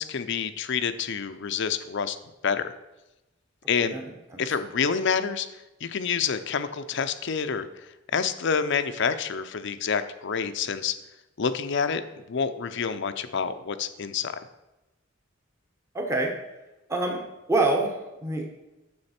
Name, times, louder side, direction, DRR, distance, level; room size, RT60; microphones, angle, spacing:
voice 1, 0.0-2.2 2.4-2.7 3.7-4.0 4.4-5.5 5.8-10.9 11.4-12.0 12.3-14.4, left 6 dB, 60° left, 11 dB, 0.6 m, -28 dB
voice 2, 3.8-4.4 15.9-16.4 16.9-18.6, right 2 dB, 15° right, 1 dB, 1.1 m, -27 dB
9.7 x 7.0 x 4.3 m, 1.0 s
head